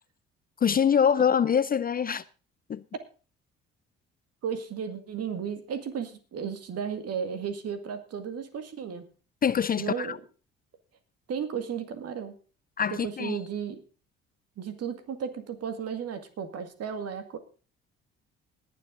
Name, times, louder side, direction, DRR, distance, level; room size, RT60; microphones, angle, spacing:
voice 1, 0.6-2.2 2.7-2.8 9.4-10.2 12.8-13.4, left 7 dB, 30° left, 0.5 m, -24 dB
voice 2, 4.4-9.0 9.8-10.2 11.3-12.3 12.9-13.8 14.6-17.4, right 7 dB, 55° right, 2.1 m, -34 dB
19.5 x 7.6 x 3.8 m
hypercardioid pair, 50°, 30 cm